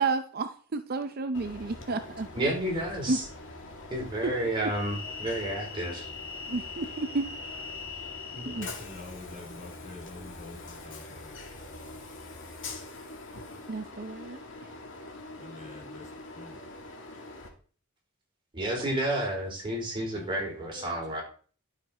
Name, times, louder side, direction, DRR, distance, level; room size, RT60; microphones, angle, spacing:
voice 1, 0.0-2.3 3.1-3.2 4.2-4.3 6.5-7.3 8.4-8.7 13.7-14.4, right 3 dB, 45° right, 9 dB, 0.6 m, -31 dB
Train, 1.3-17.5, left 3 dB, 60° left, 2.3 m, -42 dB
voice 2, 2.3-3.2 3.9-6.1 18.5-21.2, right 1 dB, 25° right, -1 dB, 4.3 m, -31 dB
voice 3, 8.3-11.3 15.4-16.1 16.3-16.6 20.1-20.4 20.7-21.2, left 2 dB, 35° left, -1 dB, 3.6 m, -46 dB
11.5 x 6.7 x 4.4 m, 0.41 s
head